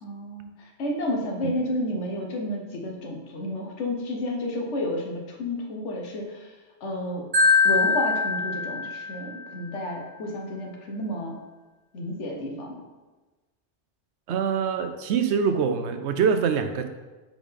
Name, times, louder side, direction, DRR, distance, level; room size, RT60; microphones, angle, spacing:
voice 1, 0.0-0.5 0.8-6.5 6.8-7.3 7.6-11.4 11.9-12.8, left 1 dB, 80° left, 1 dB, 1.2 m, -31 dB
Marimba xylophone, 7.3-9.4, left 4 dB, 35° right, 1.2 m, -22 dB
voice 2, 14.3-16.9, right 6 dB, 75° right, 8 dB, 0.8 m, -24 dB
4.9 x 3.8 x 5.0 m, 1.2 s
omnidirectional pair, 1.2 m